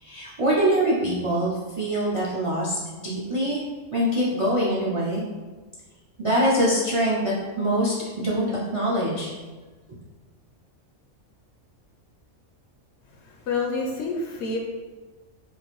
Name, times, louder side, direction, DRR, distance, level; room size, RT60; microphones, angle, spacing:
voice 1, 0.0-3.6 3.9-5.2 6.2-8.5 8.7-9.3, right 1 dB, 50° right, -7 dB, 0.3 m, -24 dB
voice 2, 13.0-14.6, left 3 dB, 65° left, 0 dB, 0.8 m, -28 dB
3.7 x 2.4 x 3.0 m, 1.3 s
omnidirectional pair, 1.3 m